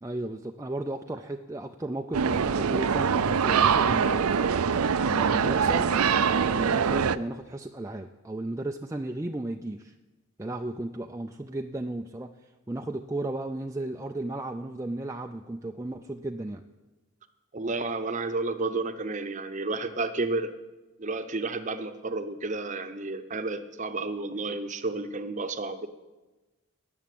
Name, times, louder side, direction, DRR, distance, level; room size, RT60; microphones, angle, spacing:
voice 1, 0.0-4.4 5.1-5.9 6.4-9.9 10.4-16.6, right 2 dB, 15° right, 4 dB, 0.4 m, -34 dB
sound 1, 2.1-7.2, right 6 dB, 85° right, 0.5 m, -24 dB
voice 2, 17.5-20.5 21.0-25.9, right 3 dB, 35° right, 9 dB, 0.8 m, -31 dB
18.0 x 7.0 x 8.4 m, 1.2 s
head